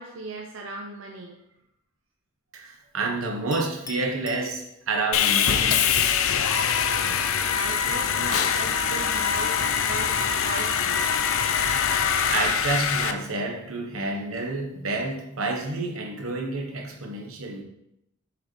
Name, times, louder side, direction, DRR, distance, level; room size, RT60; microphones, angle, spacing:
voice 1, 0.0-1.4 6.9-11.4, right 2 dB, 65° right, 1 dB, 0.6 m, -38 dB
voice 2, 2.5-5.8 12.3-17.6, right 3 dB, 90° right, 1 dB, 1.1 m, -29 dB
Chink clink, 3.5-5.2, left 5 dB, 15° left, 0.5 m, -44 dB
Sawing, 5.1-13.1, left 7 dB, 75° left, 0.5 m, -23 dB
6.6 x 5.2 x 3.2 m, 0.82 s
head